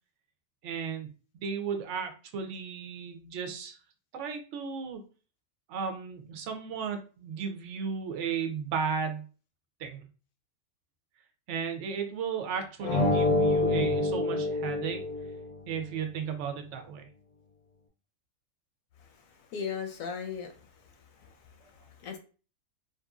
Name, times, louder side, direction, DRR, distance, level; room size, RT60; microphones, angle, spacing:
voice 1, 0.6-1.1 1.3-3.8 4.1-5.0 5.7-9.2 9.8-10.0 11.5-15.0 15.7-17.0, right 6 dB, 65° right, 5 dB, 0.8 m, -34 dB
sound 1, 12.8-15.5, left 2 dB, 90° left, 1.2 m, -26 dB
voice 2, 19.5-20.5 21.2-21.3 21.6-22.2, left 6 dB, 70° left, 5 dB, 0.9 m, -37 dB
2.9 x 2.5 x 2.3 m, 0.37 s
omnidirectional pair, 1.6 m